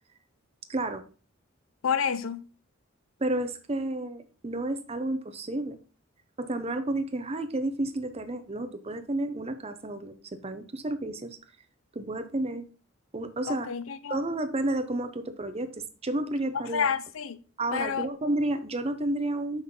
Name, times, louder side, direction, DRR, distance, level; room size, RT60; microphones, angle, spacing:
voice 1, 0.7-1.0 3.2-5.8 6.4-11.4 11.9-12.7 13.1-13.7 14.1-16.9 17.6-19.6, right 2 dB, 30° right, 0.7 m, -31 dB
voice 2, 1.8-2.5 13.5-14.2 16.7-17.4 17.7-18.1, left 7 dB, 75° left, 0.5 m, -29 dB
6.2 x 5.6 x 3.6 m
head